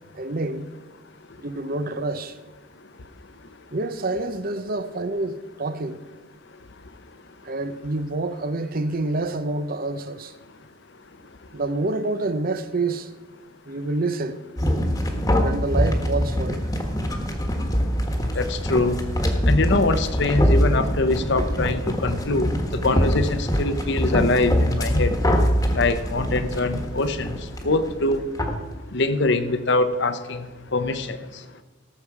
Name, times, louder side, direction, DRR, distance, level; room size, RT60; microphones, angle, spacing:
voice 1, 0.1-0.7 1.4-2.4 3.7-6.0 7.4-10.3 11.5-13.1 13.7-14.4 15.4-16.7, right 2 dB, 45° right, 0.7 m, -27 dB
sound 1, 14.6-28.6, equal, 15° left, 1.4 m, -23 dB
voice 2, 17.4-19.0 19.3-25.1 25.7-28.3 28.8-31.6, left 2 dB, 60° left, 0.9 m, -24 dB
17.5 x 7.3 x 4.8 m
head